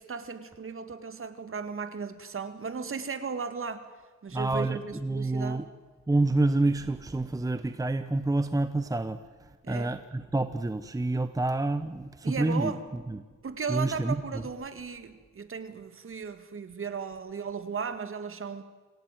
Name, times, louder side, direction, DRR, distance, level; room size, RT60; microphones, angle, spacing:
voice 1, 0.0-3.9 4.2-5.6 9.6-9.9 12.2-12.8 13.4-18.6, right 5 dB, 40° right, 10 dB, 2.2 m, -36 dB
voice 2, 4.3-5.7 6.1-13.2 13.7-14.4, right 2 dB, 10° right, 11 dB, 0.9 m, -28 dB
26.5 x 17.0 x 9.2 m, 1.4 s
cardioid pair, 110°, 32 cm